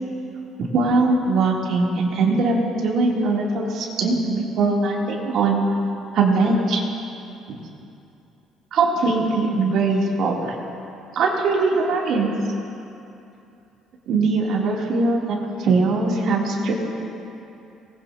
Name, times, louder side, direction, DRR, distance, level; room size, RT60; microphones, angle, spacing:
voice 1, 0.7-2.6 2.8-5.6 6.1-6.8 7.5-7.6 8.7-10.5 11.1-12.3 14.1-16.7, right 3 dB, 60° right, -3 dB, 3.2 m, -21 dB
24.5 x 20.0 x 2.9 m, 2.7 s
cardioid pair, 145°, 0 cm